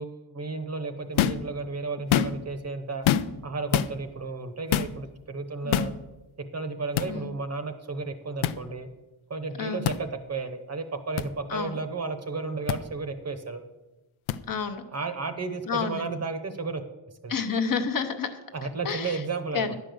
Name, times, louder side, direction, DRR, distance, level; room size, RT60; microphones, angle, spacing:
voice 1, 0.0-3.0 3.4-5.9 6.5-8.9 9.3-13.6 14.9-16.8 17.2-17.4 18.5-19.7, right 4 dB, 30° right, 9 dB, 0.8 m, -33 dB
sound 1, 1.2-1.5 2.0-2.5 3.0-3.4 3.7-3.9 4.7-4.9 5.7-5.9 6.9-7.1 8.4-8.6 9.8-10.0 11.2-11.3 12.7-12.8 14.3-14.4, left 11 dB, 75° left, 0.6 m, -24 dB
voice 2, 5.6-6.0 7.1-7.3 9.6-9.9 11.5-11.8 14.5-14.8 15.7-16.1 17.3-18.4 18.8-19.2 19.5-19.7, left 6 dB, 45° left, 7 dB, 0.8 m, -30 dB
11.0 x 5.2 x 7.7 m, 1.0 s
wide cardioid pair, 160°, 49 cm